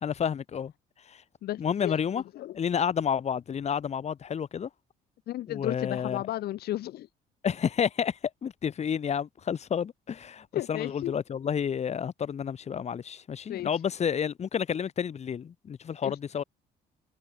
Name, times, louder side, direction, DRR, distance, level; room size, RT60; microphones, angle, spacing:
voice 1, 0.0-0.7 1.1-1.2 1.6-2.2 2.5-4.7 5.5-6.2 7.4-16.4, left 7 dB, 40° left, 2.3 m, -30 dB
voice 2, 1.4-2.6 5.3-7.1 10.5-11.1 13.5-13.7 16.0-16.2, left 14 dB, 70° left, 1.5 m, -34 dB
cardioid pair, 110°, 17 cm